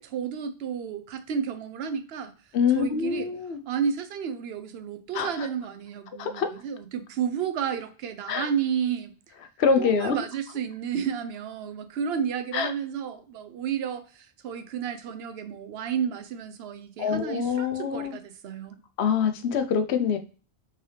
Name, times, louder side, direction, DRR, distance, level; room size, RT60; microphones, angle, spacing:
voice 1, 0.0-2.3 2.8-3.3 3.7-9.1 9.8-18.7, right 7 dB, 75° right, 9 dB, 0.8 m, -31 dB
voice 2, 2.5-3.6 5.1-5.5 6.2-6.5 8.3-8.5 9.6-10.2 12.5-12.7 17.0-18.2 19.0-20.2, left 6 dB, 80° left, 8 dB, 0.9 m, -25 dB
3.8 x 3.2 x 2.7 m, 0.38 s
omnidirectional pair, 1.1 m